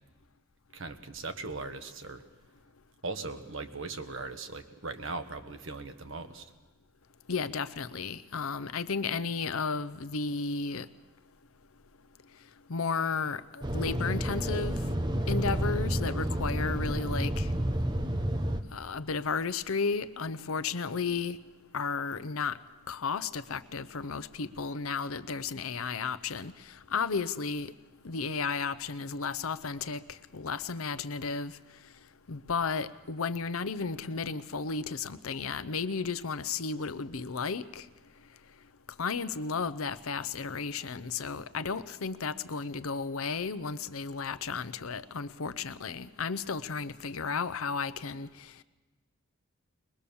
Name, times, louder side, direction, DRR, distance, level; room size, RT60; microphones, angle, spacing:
voice 1, 0.7-2.2 3.0-6.5, right 3 dB, 60° right, 8 dB, 1.3 m, -39 dB
voice 2, 7.3-10.9 12.7-14.8 15.3-17.5 18.7-21.4 21.7-22.6 22.9-27.7 28.0-31.5 32.3-37.9 39.0-48.5, left 5 dB, 75° left, 13 dB, 0.7 m, -33 dB
sound 1, 13.6-18.6, equal, 20° right, 0.8 m, -30 dB
21.5 x 21.0 x 7.1 m, 1.2 s
head